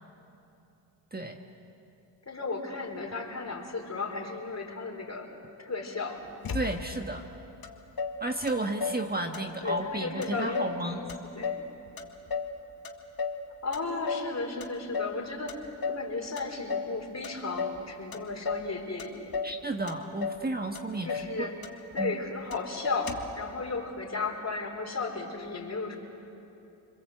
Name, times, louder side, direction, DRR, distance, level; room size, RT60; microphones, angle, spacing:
voice 1, 2.3-5.3 5.6-6.3 9.6-11.1 11.3-11.6 13.6-19.3 21.0-21.6 21.9-26.0, left 3 dB, 35° left, 2 dB, 4.4 m, -35 dB
Motor vehicle (road), 6.4-7.1 7.6-7.7 8.0-9.1 9.3-9.9 10.2-10.8 11.1-12.6 12.8-13.4 13.7-14.3 14.6-15.2 15.5-16.1 16.4-17.0 17.2-17.8 18.1-18.7 19.0-19.6 19.9-20.5 20.8-20.9 21.1-21.3 21.6-22.2 22.5-22.6 22.8-23.4, left 5 dB, 50° left, 2.0 m, -34 dB
voice 2, 6.5-7.2 8.2-11.0 19.4-21.5 22.0-22.2, right 2 dB, 20° right, 4 dB, 1.4 m, -32 dB
29.0 x 21.5 x 8.0 m, 2.9 s
cardioid pair, 70°, 45 cm